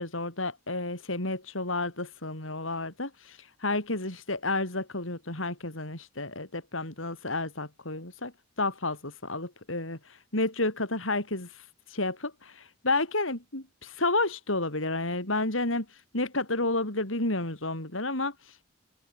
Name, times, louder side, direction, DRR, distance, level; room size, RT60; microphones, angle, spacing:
voice 1, 0.0-8.3 8.6-11.6 11.9-15.9 16.1-18.5, left 2 dB, 85° left, 7.0 m, -31 dB
head